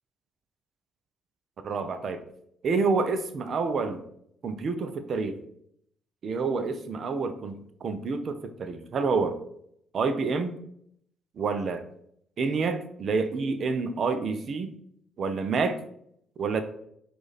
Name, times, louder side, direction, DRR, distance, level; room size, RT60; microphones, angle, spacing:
voice 1, 1.6-2.2 2.6-4.0 4.4-5.4 6.2-9.4 9.9-10.6 11.4-11.8 12.4-14.7 15.2-15.8 16.4-16.6, right 4 dB, 55° right, 9 dB, 0.5 m, -28 dB
4.9 x 2.5 x 4.1 m, 0.71 s
supercardioid pair, 60°, 0 cm